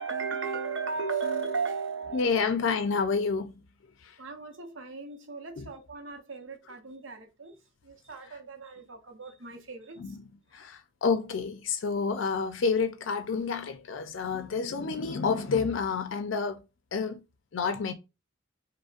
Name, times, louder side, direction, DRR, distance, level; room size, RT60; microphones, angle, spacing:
voice 1, 0.0-2.5 4.2-7.5 7.8-10.0, right 5 dB, 70° right, 0.7 m, -36 dB
voice 2, 2.1-3.5 5.6-5.7 10.0-10.2 10.5-16.6 16.9-17.2 17.5-17.9, left 5 dB, 70° left, 0.5 m, -29 dB
5.1 x 2.1 x 2.4 m
head